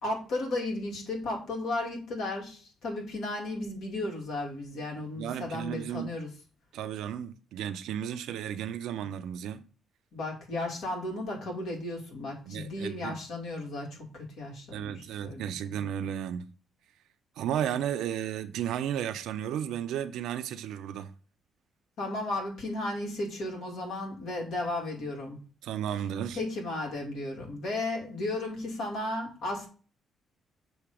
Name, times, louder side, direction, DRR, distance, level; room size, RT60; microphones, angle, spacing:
voice 1, 0.0-6.3 10.1-15.5 22.0-25.4 26.3-29.7, left 2 dB, 80° left, 2.3 m, -34 dB
voice 2, 5.1-6.1 6.7-9.6 12.5-13.2 14.7-16.4 17.4-21.1 25.6-26.4, right 10 dB, 85° right, 0.5 m, -34 dB
7.1 x 2.9 x 4.8 m
cardioid pair, 90°, 0 cm